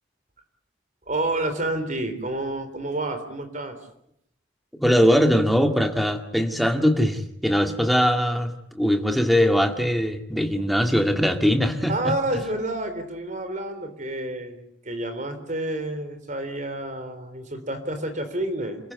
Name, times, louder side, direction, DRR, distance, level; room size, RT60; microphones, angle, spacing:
voice 1, 1.1-3.8 11.9-18.8, right 1 dB, 40° right, 9 dB, 3.8 m, -29 dB
voice 2, 4.8-12.1, equal, ahead, 5 dB, 2.0 m, -21 dB
28.5 x 15.5 x 9.6 m, 0.76 s
head